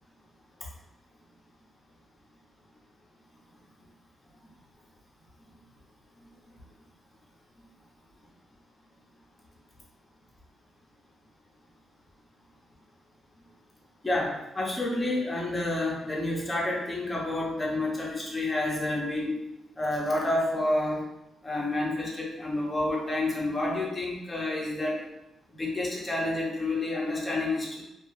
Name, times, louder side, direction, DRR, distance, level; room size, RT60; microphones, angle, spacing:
voice 1, 14.0-19.4 19.8-21.0 21.4-25.0 25.6-27.8, left 2 dB, 20° left, -3 dB, 0.9 m, -29 dB
2.4 x 2.4 x 3.2 m, 0.87 s
cardioid pair, 90°, 0 cm